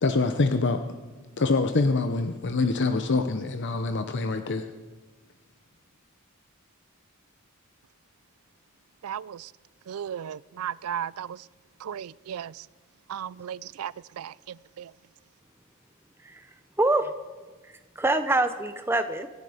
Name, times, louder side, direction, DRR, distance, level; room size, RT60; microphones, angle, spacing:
voice 1, 0.0-0.8 1.4-4.7, left 3 dB, 55° left, 0.8 m, -25 dB
voice 2, 9.0-9.5 9.9-11.5 11.8-12.7 13.1-14.9, right 9 dB, 85° right, 0.4 m, -36 dB
voice 3, 16.2-17.1 17.6-19.3, right 2 dB, 10° right, 0.6 m, -26 dB
25.0 x 11.0 x 5.0 m
head